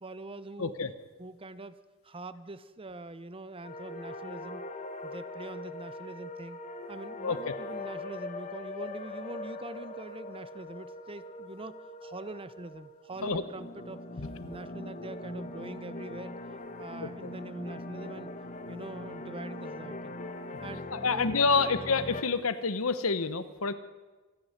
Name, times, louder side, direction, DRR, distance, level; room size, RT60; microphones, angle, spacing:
voice 1, 0.0-0.7 1.2-1.8 2.0-4.6 5.0-6.6 6.9-11.7 12.0-14.1 14.4-16.3 16.8-18.3 18.7-20.1 20.6-21.7, right 2 dB, 25° right, 14 dB, 0.8 m, -44 dB
voice 2, 0.6-0.9 7.2-7.5 13.2-13.4 17.0-17.3 20.9-23.7, left 4 dB, 90° left, 12 dB, 1.2 m, -28 dB
sound 1, 3.6-22.2, left 2 dB, 35° left, 1.5 m, -41 dB
26.5 x 10.5 x 9.6 m, 1.3 s
head